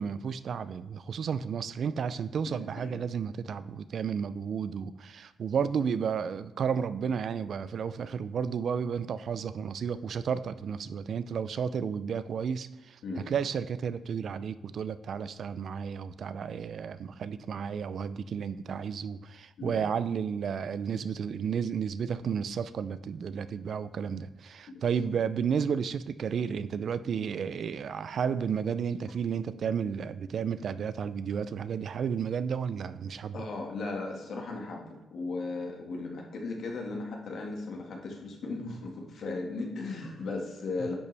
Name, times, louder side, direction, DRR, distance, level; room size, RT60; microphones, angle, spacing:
voice 1, 0.0-13.0 13.3-33.5, right 7 dB, 55° right, 14 dB, 0.4 m, -32 dB
voice 2, 2.5-3.0 13.0-13.3 19.6-19.8 24.7-25.1 33.3-40.9, left 3 dB, 60° left, 0 dB, 1.8 m, -37 dB
10.0 x 7.0 x 3.4 m, 1.0 s
cardioid pair, 130°, 0 cm